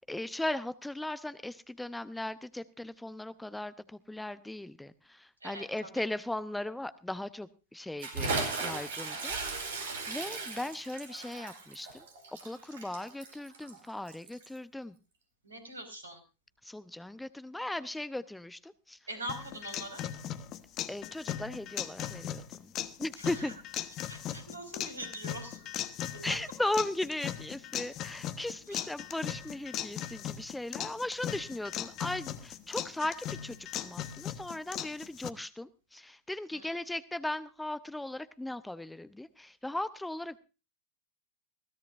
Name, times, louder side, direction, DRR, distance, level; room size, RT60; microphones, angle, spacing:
voice 1, 0.1-9.4 9.7-12.1 12.4-14.9 16.6-19.0 20.9-22.7 23.0-23.5 26.2-40.4, left 1 dB, 5° left, 15 dB, 0.7 m, -37 dB
voice 2, 5.4-6.0 10.0-10.5 15.4-16.2 19.1-20.0 23.2-23.5 24.1-25.7 26.1-26.4 28.6-28.9 36.5-36.8, right 1 dB, 75° right, 10 dB, 5.4 m, -43 dB
Bathtub (filling or washing) / Splash splatter, 8.0-14.6, right 3 dB, 60° right, 4.8 m, -37 dB
sound 1, 19.3-35.3, left 11 dB, 35° left, 1.2 m, -38 dB
21.0 x 17.0 x 2.6 m, 0.32 s
figure-of-eight pair, 90°, 0 cm